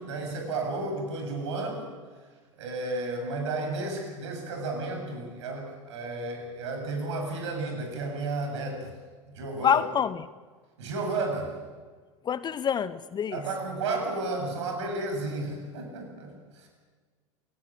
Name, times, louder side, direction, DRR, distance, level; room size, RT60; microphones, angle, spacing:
voice 1, 0.0-1.8 2.6-8.9 9.4-9.8 10.8-11.5 13.3-16.7, right 3 dB, 60° right, 3 dB, 7.7 m, -32 dB
voice 2, 9.6-10.3 12.2-13.4, left 8 dB, 25° left, 16 dB, 0.9 m, -26 dB
27.5 x 17.5 x 7.6 m, 1.5 s
figure-of-eight pair, 75°, 17 cm